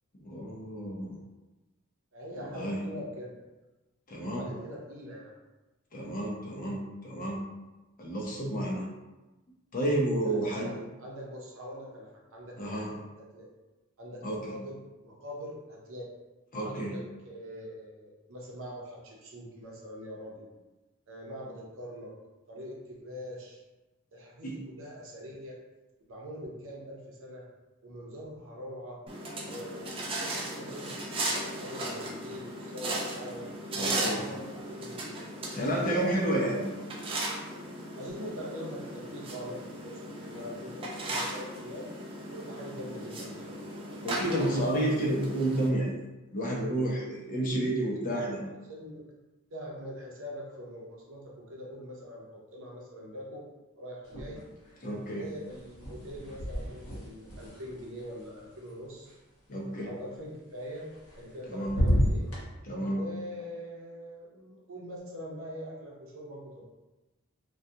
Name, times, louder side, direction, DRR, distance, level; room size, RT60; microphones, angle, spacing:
voice 1, 0.2-1.2 2.5-2.8 4.1-4.5 5.9-7.4 8.0-8.8 9.7-10.7 12.6-12.9 14.2-14.4 16.5-16.9 24.4-24.5 33.7-34.2 35.5-36.6 44.0-45.9 46.3-48.4 54.8-55.2 59.5-59.9 61.5-61.8 62.6-63.0, right 1 dB, 40° left, -3 dB, 0.6 m, -30 dB
voice 2, 2.1-3.4 4.3-5.3 10.2-13.5 14.0-16.1 16.6-20.5 21.1-22.1 22.5-23.6 24.1-25.6 26.1-27.5 27.8-29.0 29.4-33.5 34.1-35.3 35.7-36.5 38.0-41.9 42.2-43.6 47.2-47.4 48.5-49.1 49.5-53.4 53.8-54.4 55.0-59.1 59.8-62.3 62.9-66.6, equal, 65° right, -3 dB, 0.7 m, -43 dB
sound 1, 29.1-45.7, right 1 dB, 25° right, 0.4 m, -37 dB
sound 2, 54.0-54.8 55.0-59.1 60.7-61.4 61.6-62.4, equal, 70° left, 0.9 m, -32 dB
2.3 x 2.2 x 2.7 m, 1.1 s
head